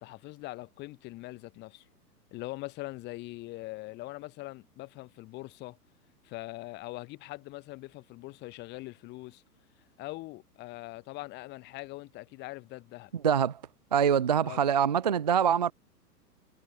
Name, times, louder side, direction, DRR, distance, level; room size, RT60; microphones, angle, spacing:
voice 1, 0.0-1.8 2.3-5.8 6.2-9.4 10.0-13.1 14.4-14.6, left 20 dB, 20° left, 1.4 m, -42 dB
voice 2, 13.1-13.6 13.9-15.7, right 8 dB, 30° right, 0.4 m, -24 dB
figure-of-eight pair, 110°, 48 cm